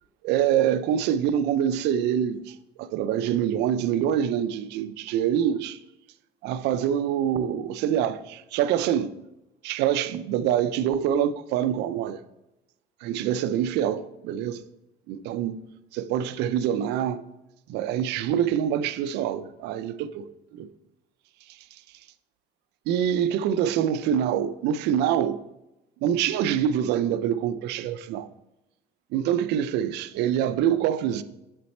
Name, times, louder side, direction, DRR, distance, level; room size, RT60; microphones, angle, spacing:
voice 1, 0.2-5.8 6.4-9.1 9.6-12.2 13.0-14.6 15.1-15.6 15.9-17.2 17.7-20.3 20.5-20.7 22.9-25.4 26.0-28.3 29.1-31.2, right 9 dB, 85° right, 0.4 m, -25 dB
7.3 x 4.2 x 4.2 m
cardioid pair, 110°, 17 cm